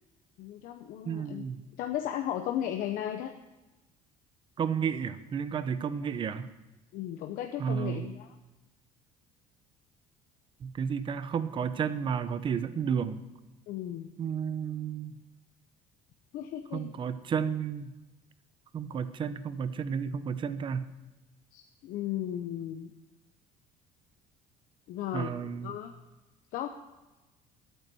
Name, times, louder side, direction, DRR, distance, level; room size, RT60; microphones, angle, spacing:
voice 1, 0.4-1.4 1.8-3.3 6.9-8.3 13.7-14.1 16.3-16.9 21.5-22.9 24.9-25.9 26.5-26.7, left 11 dB, 70° left, 5 dB, 0.9 m, -35 dB
voice 2, 1.1-1.6 4.6-6.5 7.6-8.1 10.6-13.2 14.2-15.2 16.7-17.9 18.7-20.9 25.1-25.7, right 7 dB, 35° right, 12 dB, 0.8 m, -32 dB
11.0 x 9.1 x 6.2 m, 1.1 s
cardioid pair, 140°, 15 cm